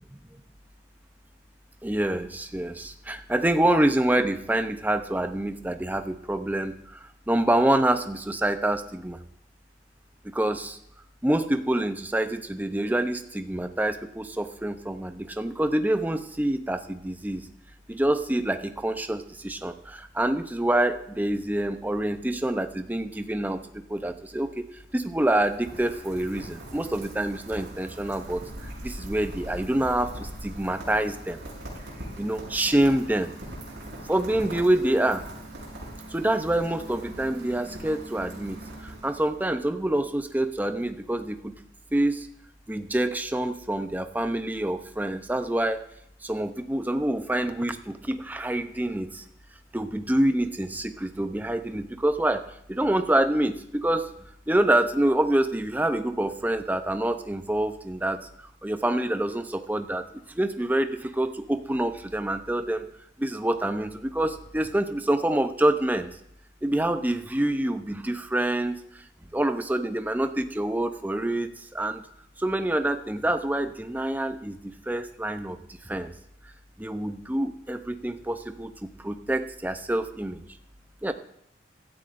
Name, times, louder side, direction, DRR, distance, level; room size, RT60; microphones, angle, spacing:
voice 1, 1.8-6.7 7.3-9.2 10.3-10.8 11.2-17.4 17.9-23.6 23.9-24.5 24.9-28.4 28.8-31.4 32.2-33.3 34.1-35.2 36.1-38.6 39.0-41.5 41.9-42.3 42.7-45.8 46.2-49.1 49.7-52.4 52.7-54.0 54.5-58.2 58.6-60.0 60.4-62.8 63.2-66.1 66.6-68.8 69.3-71.5 71.7-72.0 72.4-74.6 74.9-75.6 75.9-76.1 76.8-78.7 79.0-80.4 81.0-81.1, right 1 dB, 10° right, 8 dB, 0.6 m, -26 dB
Rain, 24.7-39.5, right 1 dB, 65° right, 5.8 m, -41 dB
16.0 x 12.5 x 2.5 m, 0.73 s
head